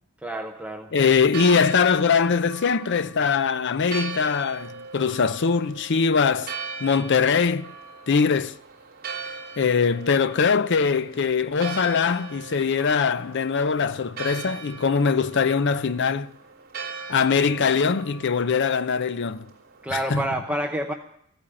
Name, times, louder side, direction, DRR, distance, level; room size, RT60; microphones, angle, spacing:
voice 1, 0.2-0.9 19.8-20.9, right 1 dB, 5° right, 0.7 m, -28 dB
voice 2, 0.9-6.5 6.8-7.7 8.1-8.6 9.6-16.3 17.1-19.5 19.9-20.3, left 5 dB, 55° left, 0.6 m, -22 dB
Church bell, 0.9-20.4, right 5 dB, 45° right, 3.2 m, -40 dB
15.0 x 8.7 x 8.8 m
head